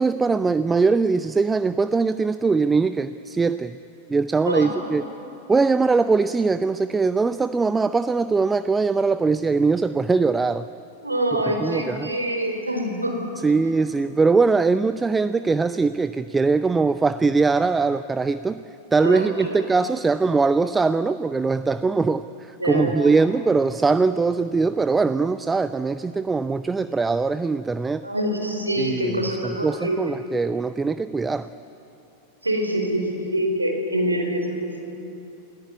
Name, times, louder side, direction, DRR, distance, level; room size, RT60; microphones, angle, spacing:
voice 1, 0.0-3.8 4.1-5.0 5.5-10.7 11.5-12.1 13.4-18.6 18.9-28.0 28.8-31.5, right 4 dB, 15° right, 13 dB, 0.5 m, -21 dB
voice 2, 11.0-13.2 19.0-19.6 22.6-23.1 28.0-30.1 32.4-34.8, right 1 dB, 85° right, 2 dB, 4.7 m, -25 dB
28.5 x 18.0 x 9.7 m, 2.8 s
figure-of-eight pair, 90°, 0 cm